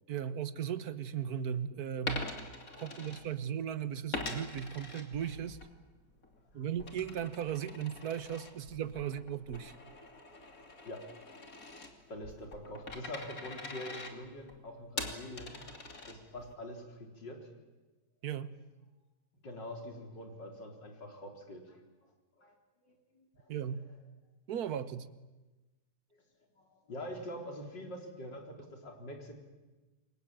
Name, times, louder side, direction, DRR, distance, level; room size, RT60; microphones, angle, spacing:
voice 1, 0.1-2.3 2.8-5.6 6.5-9.8 18.2-18.5 23.5-23.8 24.5-25.1, right 9 dB, 60° right, 13 dB, 1.6 m, -37 dB
Coin (dropping), 2.0-3.7 4.1-5.7 6.1-16.5, left 3 dB, 50° left, 3.2 m, -44 dB
voice 2, 2.7-3.0 6.5-6.6 10.8-11.1 12.1-15.6 16.0-17.4 19.4-21.8 22.4-22.5 22.8-23.5 26.6-29.4, left 1 dB, 90° left, 2 dB, 4.7 m, -45 dB
28.0 x 23.5 x 9.0 m, 1.2 s
omnidirectional pair, 1.9 m